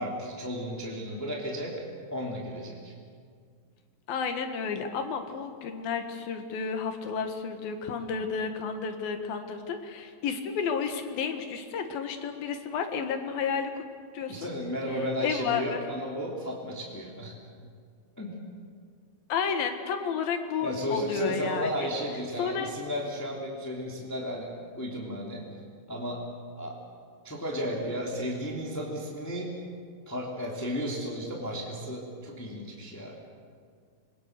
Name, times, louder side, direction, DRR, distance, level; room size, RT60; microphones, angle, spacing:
voice 1, 0.0-1.8 2.1-2.9 14.3-17.3 18.1-18.4 20.6-25.5 25.9-26.3 26.6-26.8 27.2-29.6 30.1-33.2, equal, 5° left, -2 dB, 2.4 m, -34 dB
voice 2, 4.1-13.9 14.1-14.5 15.2-15.8 19.3-21.9 22.4-22.7, left 6 dB, 85° left, 6 dB, 3.4 m, -31 dB
27.5 x 22.5 x 6.7 m, 2.1 s
omnidirectional pair, 4.1 m